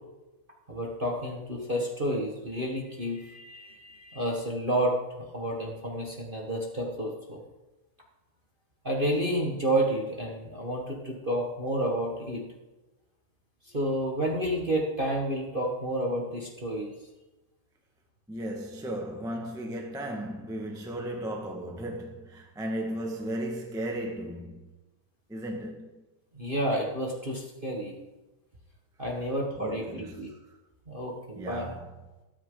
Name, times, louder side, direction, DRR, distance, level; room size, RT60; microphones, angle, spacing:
voice 1, 0.7-5.0 5.3-7.4 8.8-12.4 13.7-16.9 26.3-27.9 29.0-30.3 30.9-31.7, right 1 dB, 25° right, 1.2 m, -30 dB
voice 2, 18.3-24.7 25.3-25.9 29.6-30.4 31.3-31.9, right 1 dB, ahead, 0.8 m, -35 dB
14.0 x 13.0 x 3.9 m
omnidirectional pair, 3.4 m